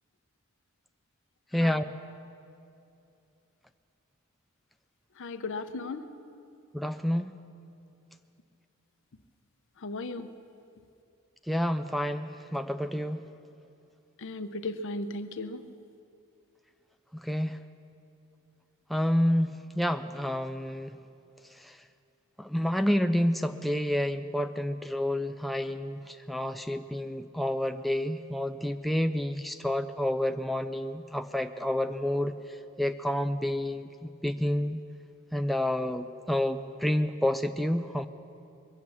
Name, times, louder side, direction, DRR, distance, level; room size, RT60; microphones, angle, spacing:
voice 1, 1.5-1.9 6.7-7.3 11.5-13.3 17.2-17.6 18.9-20.9 21.6-21.8 22.4-32.3 32.8-34.8 35.3-38.1, left 1 dB, ahead, 7 dB, 0.3 m, -29 dB
voice 2, 5.2-6.0 9.8-10.3 14.2-15.6, left 2 dB, 65° left, 10 dB, 0.7 m, -36 dB
22.0 x 8.5 x 7.3 m, 2.6 s
head